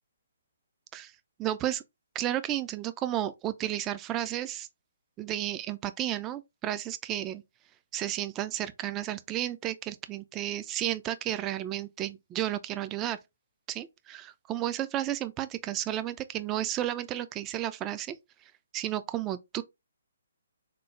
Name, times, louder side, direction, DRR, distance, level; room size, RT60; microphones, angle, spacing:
voice 1, 1.4-1.8 2.1-4.7 5.2-7.4 7.9-13.2 13.7-18.2 18.7-19.6, right 12 dB, 20° right, 0.3 m, -32 dB
3.6 x 2.0 x 3.0 m
figure-of-eight pair, 135°, 0 cm